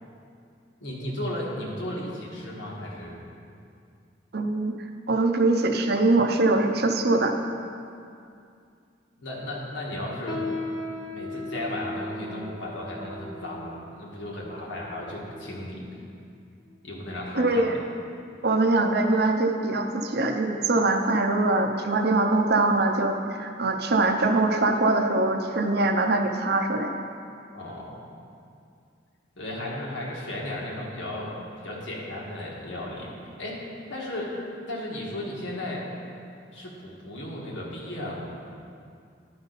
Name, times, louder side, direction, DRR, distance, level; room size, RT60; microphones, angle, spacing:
voice 1, 0.8-3.2 9.2-10.5 11.1-15.8 16.8-17.7 27.5-28.0 29.4-33.1 33.4-35.9 36.5-38.2, left 1 dB, 80° left, -4 dB, 1.6 m, -35 dB
voice 2, 4.3-4.7 5.1-7.4 17.3-17.8 18.4-26.9, right 2 dB, 55° right, 5 dB, 0.6 m, -23 dB
sound 1, 10.3-15.9 16.6-16.7 17.5-17.8 18.2-18.3 19.0-19.1, left 2 dB, 20° left, 0.7 m, -38 dB
11.0 x 5.4 x 4.0 m, 2.4 s
head